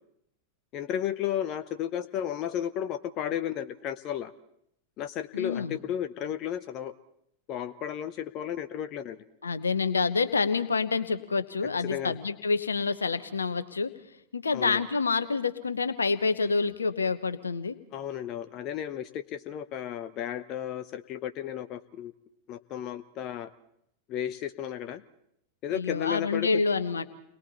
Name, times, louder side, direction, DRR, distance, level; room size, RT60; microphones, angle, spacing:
voice 1, 0.7-4.3 5.0-6.9 7.5-9.2 11.8-12.2 14.5-14.8 17.9-22.1 22.5-23.5 24.1-25.0 25.6-26.6, left 10 dB, 35° left, 11 dB, 0.8 m, -33 dB
voice 2, 5.3-5.8 9.4-13.9 14.3-17.8 25.7-27.0, left 4 dB, 75° left, 12 dB, 1.1 m, -27 dB
29.5 x 21.5 x 4.2 m, 0.76 s
figure-of-eight pair, 90°, 0 cm